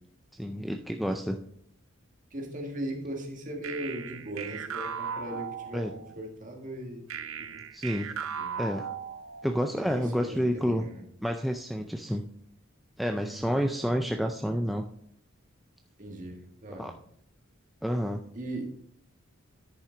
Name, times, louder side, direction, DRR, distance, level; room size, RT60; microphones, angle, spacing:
voice 1, 0.4-1.4 5.7-5.9 7.7-8.1 8.6-8.8 9.4-10.9 11.2-12.2 13.0-14.8 16.7-16.9 17.8-18.2, equal, ahead, 3 dB, 0.3 m, -29 dB
voice 2, 2.3-7.0 7.4-7.6 8.1-8.6 9.7-11.0 13.2-13.5 14.1-14.2 16.0-16.9 18.3-18.6, right 1 dB, 40° right, 2 dB, 1.6 m, -39 dB
sound 1, 3.6-6.2 7.1-9.6, right 7 dB, 85° right, 0.6 m, -37 dB
10.0 x 5.7 x 3.8 m, 0.68 s
head